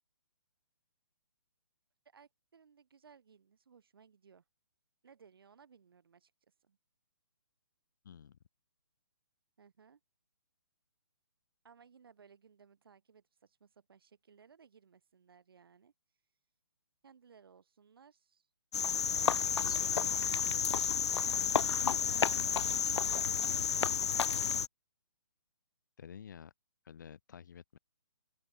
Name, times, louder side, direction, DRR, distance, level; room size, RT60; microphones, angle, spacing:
voice 1, 2.1-4.4 5.0-6.3 6.6-6.8 9.6-10.0 11.6-15.9 17.0-18.5 19.1-20.4 23.7-24.2, right 6 dB, 60° right, 6.8 m, -61 dB
voice 2, 8.0-8.4 19.4-20.2 26.0-26.5 26.9-27.8, left 8 dB, 45° left, 1.8 m, -50 dB
Cricket, 18.7-24.7, left 7 dB, 85° left, 0.5 m, -31 dB
hypercardioid pair, 170°, 14 cm